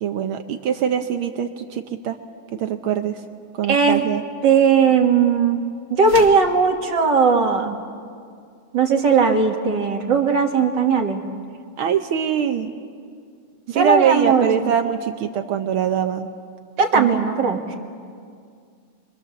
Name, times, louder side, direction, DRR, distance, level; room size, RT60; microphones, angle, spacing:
voice 1, 0.0-2.2 2.5-3.2 3.6-4.2 11.8-12.7 13.7-16.3 16.9-17.2, right 8 dB, 80° right, 7 dB, 1.2 m, -23 dB
voice 2, 3.7-4.0 4.4-5.6 5.9-7.8 8.7-11.2 13.7-14.7 16.8-17.7, right 5 dB, 45° right, 2 dB, 1.9 m, -18 dB
sound 1, 6.0-6.5, left 3 dB, 40° left, 2.5 m, -34 dB
28.0 x 24.0 x 7.0 m, 2.2 s
omnidirectional pair, 3.4 m